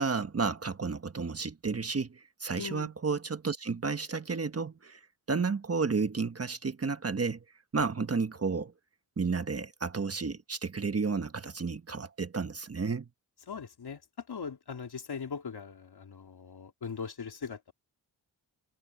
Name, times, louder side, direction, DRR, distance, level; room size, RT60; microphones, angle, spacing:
voice 1, 0.0-5.0 5.3-7.4 7.7-8.7 9.2-13.1, right 4 dB, 35° right, 1.3 m, -32 dB
voice 2, 2.6-2.9 13.5-17.7, left 6 dB, 65° left, 3.8 m, -40 dB
wide cardioid pair, 95°, 41 cm